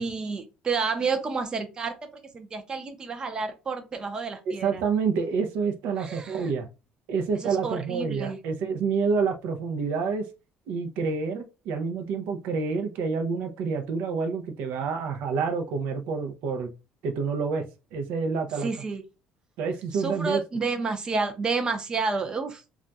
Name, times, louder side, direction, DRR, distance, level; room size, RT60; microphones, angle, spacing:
voice 1, 0.0-1.9 2.3-4.8 6.0-6.5 7.4-8.4 18.6-19.0 20.0-22.6, right 4 dB, 25° right, 0.5 m, -30 dB
voice 2, 4.5-6.7 7.1-10.3 10.7-16.7 17.0-17.6 17.9-18.7 19.6-20.4, right 5 dB, 75° right, 0.5 m, -28 dB
2.3 x 2.2 x 3.9 m
cardioid pair, 155°, 3 cm